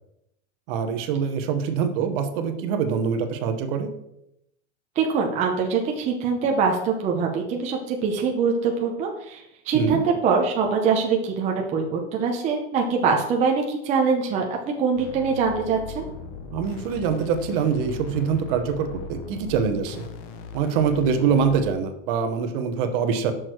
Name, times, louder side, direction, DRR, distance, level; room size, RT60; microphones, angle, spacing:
voice 1, 0.7-3.9 9.7-10.1 16.5-20.1 20.5-23.3, right 6 dB, 50° right, 8 dB, 1.0 m, -24 dB
voice 2, 5.0-16.0, right 5 dB, 20° right, 1 dB, 0.7 m, -23 dB
sound 1, 15.0-21.7, left 5 dB, 35° left, 0.9 m, -39 dB
6.3 x 6.2 x 4.6 m, 0.80 s
supercardioid pair, 155°, 36 cm